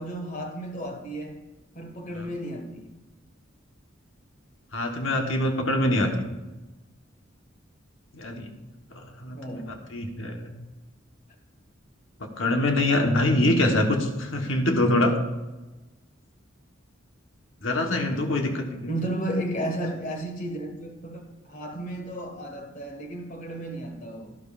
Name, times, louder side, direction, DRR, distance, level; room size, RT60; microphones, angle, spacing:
voice 1, 0.0-1.4 1.7-2.9 9.3-9.9 10.2-10.3 18.9-24.4, right 1 dB, 40° left, 4 dB, 1.7 m, -33 dB
voice 2, 4.7-6.3 8.1-8.5 8.9-9.4 9.7-10.5 12.4-15.1 17.6-18.9, left 1 dB, 80° left, 3 dB, 1.3 m, -24 dB
12.0 x 12.0 x 2.5 m, 1.1 s
head